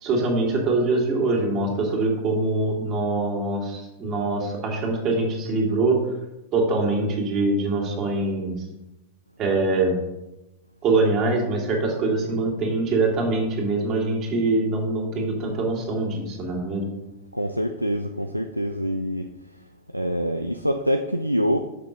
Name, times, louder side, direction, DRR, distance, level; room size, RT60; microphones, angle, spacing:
voice 1, 0.0-6.0 6.5-8.6 9.4-10.0 10.8-16.9, right 2 dB, 35° right, 0 dB, 2.2 m, -23 dB
voice 2, 17.3-19.3 19.9-21.6, equal, 90° right, 6 dB, 0.4 m, -25 dB
6.7 x 5.4 x 5.1 m, 0.95 s
figure-of-eight pair, 90°, 0 cm